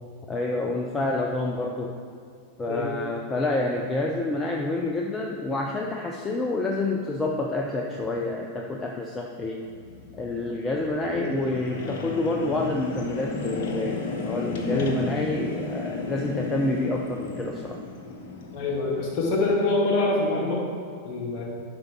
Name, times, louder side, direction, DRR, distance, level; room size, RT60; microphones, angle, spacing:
voice 1, 0.3-2.0 2.6-9.7 10.1-17.8, left 2 dB, 15° left, 1 dB, 0.6 m, -28 dB
sound 1, 9.6-19.4, left 3 dB, 55° left, 1.0 m, -34 dB
voice 2, 18.5-20.6 21.0-21.5, left 2 dB, 40° left, -2 dB, 1.9 m, -25 dB
11.5 x 5.1 x 4.5 m, 2.3 s
figure-of-eight pair, 90°, 0 cm